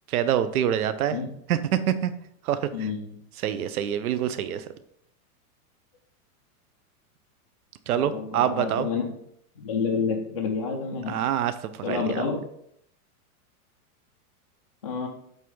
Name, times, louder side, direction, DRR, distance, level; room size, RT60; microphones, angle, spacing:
voice 1, 0.1-1.2 1.5-2.1 2.4-2.9 3.4-4.7 7.9-8.9 11.1-12.3, right 10 dB, 70° right, 12 dB, 0.8 m, -26 dB
voice 2, 2.7-3.1 7.9-9.0 9.6-11.2 11.8-12.4 14.8-15.1, left 5 dB, 25° left, -2 dB, 0.4 m, -29 dB
8.2 x 3.5 x 5.4 m, 0.71 s
supercardioid pair, 180°, 45 cm